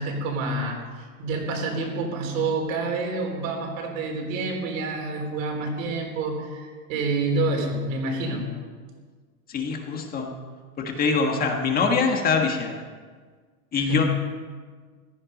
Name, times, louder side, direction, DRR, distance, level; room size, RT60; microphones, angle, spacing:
voice 1, 0.0-8.5 13.9-14.1, right 3 dB, 60° right, 2 dB, 3.9 m, -28 dB
voice 2, 9.5-10.3 10.8-12.8 13.7-14.0, left 5 dB, 20° left, 3 dB, 1.5 m, -24 dB
15.5 x 12.5 x 5.3 m, 1.5 s
supercardioid pair, 155°, 44 cm